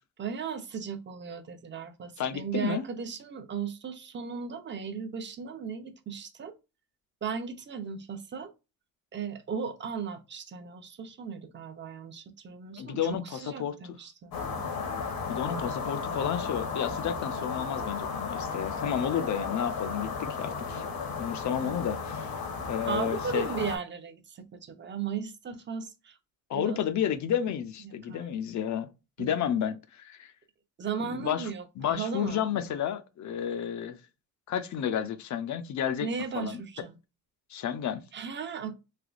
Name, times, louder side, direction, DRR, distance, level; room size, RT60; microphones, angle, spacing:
voice 1, 0.2-6.5 7.2-8.5 9.1-14.4 21.6-21.7 22.9-26.1 26.5-26.8 27.8-28.3 29.2-29.3 30.8-31.6 31.9-32.4 36.0-37.0 38.1-38.7, right 6 dB, 30° right, 0.5 m, -36 dB
voice 2, 2.2-2.8 12.7-14.0 15.3-20.8 21.2-22.3 22.7-23.5 26.5-28.9 29.2-30.3 31.0-31.5 31.8-34.0 34.5-36.1 36.3-36.6 37.5-38.0, left 9 dB, 55° left, 0.5 m, -31 dB
sound 1, 14.3-23.8, left 5 dB, 80° left, 1.1 m, -34 dB
3.3 x 3.1 x 2.4 m
cardioid pair, 140°, 35 cm